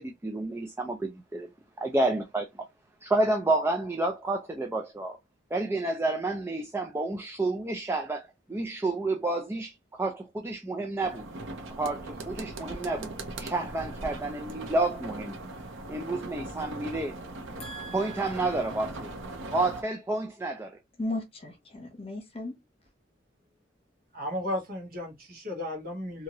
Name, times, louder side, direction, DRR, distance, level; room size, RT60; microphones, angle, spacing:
voice 1, 0.0-1.5 1.8-2.7 3.0-5.2 5.5-11.3 11.8-13.1 13.4-15.4 15.9-17.2 17.9-19.1 19.5-20.8, right 2 dB, 15° right, 0.3 m, -30 dB
Rain on roof window, 11.0-19.8, right 2 dB, 85° right, 0.6 m, -40 dB
voice 2, 17.6-18.3 21.0-22.6, left 1 dB, 30° left, 0.9 m, -36 dB
voice 3, 24.1-26.2, left 1 dB, 50° right, 1.4 m, -34 dB
2.8 x 2.6 x 2.8 m
head